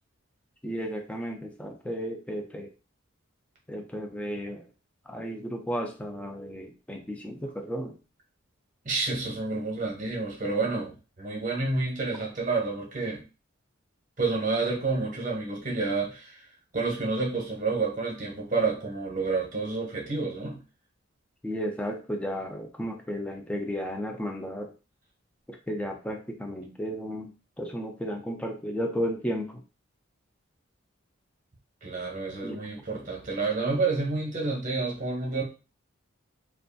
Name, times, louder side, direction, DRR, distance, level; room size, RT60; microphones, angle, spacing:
voice 1, 0.6-2.7 3.7-4.6 5.1-7.9 21.4-24.7 25.5-27.3 27.6-29.6 32.4-32.6, equal, 5° left, 3 dB, 0.4 m, -33 dB
voice 2, 8.8-13.2 14.2-16.4 16.7-20.6 31.8-35.4, right 3 dB, 40° right, -1 dB, 0.8 m, -29 dB
2.5 x 2.3 x 2.5 m, 0.32 s
head